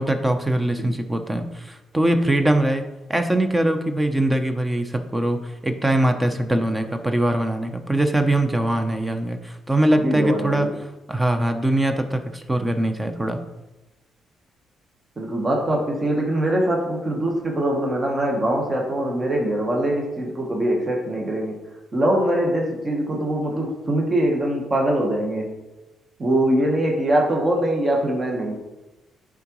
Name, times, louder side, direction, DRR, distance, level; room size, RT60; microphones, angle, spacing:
voice 1, 0.0-2.8 3.1-10.7 11.1-13.4, right 1 dB, 15° right, 6 dB, 0.7 m, -22 dB
voice 2, 10.0-10.7 15.2-21.5 21.9-25.5 26.2-28.6, right 1 dB, 30° right, 0 dB, 1.2 m, -23 dB
10.5 x 3.6 x 3.0 m, 1.1 s
cardioid pair, 90°, 0 cm